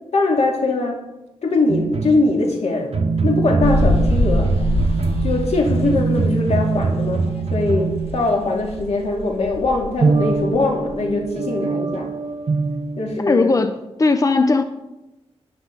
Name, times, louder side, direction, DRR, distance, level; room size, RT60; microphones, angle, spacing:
voice 1, 0.1-1.0 1.4-2.9 3.2-4.6 5.2-12.1 13.0-13.5, left 3 dB, 80° left, 1 dB, 2.6 m, -21 dB
sound 1, 1.7-2.5 2.9-8.7 10.0-13.2, right 4 dB, 70° right, 1.0 m, -22 dB
sound 2, 3.6-7.5 7.7-11.2, left 1 dB, 65° left, 1.9 m, -24 dB
voice 2, 13.3-14.6, left 3 dB, 30° left, 9 dB, 0.7 m, -18 dB
16.5 x 10.5 x 4.1 m, 0.98 s
wide cardioid pair, 85°, 11 cm